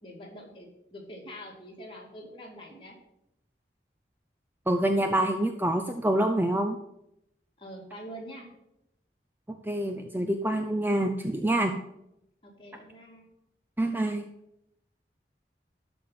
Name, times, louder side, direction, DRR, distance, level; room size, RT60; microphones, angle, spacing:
voice 1, 0.0-3.0 7.6-8.5 12.4-13.3, equal, 30° left, -2 dB, 2.5 m, -45 dB
voice 2, 4.7-6.8 9.7-11.7 13.8-14.3, right 1 dB, 10° right, 5 dB, 0.5 m, -26 dB
12.5 x 4.4 x 7.4 m, 0.82 s
head